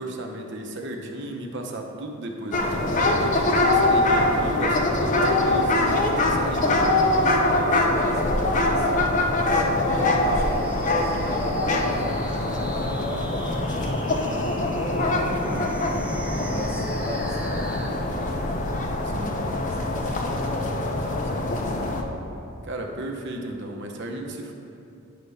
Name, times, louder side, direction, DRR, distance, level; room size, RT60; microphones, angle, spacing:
voice 1, 0.0-7.0 19.0-19.4 22.6-24.5, right 1 dB, 55° right, 2 dB, 0.8 m, -34 dB
sound 1, 2.5-22.0, left 2 dB, 35° left, 0.6 m, -23 dB
voice 2, 7.7-9.0 9.5-15.7 16.4-18.5 19.3-21.9, left 1 dB, 10° left, -3 dB, 1.0 m, -36 dB
sound 2, 9.1-17.9, right 1 dB, 5° right, 0.5 m, -38 dB
10.5 x 3.5 x 5.4 m, 2.7 s
head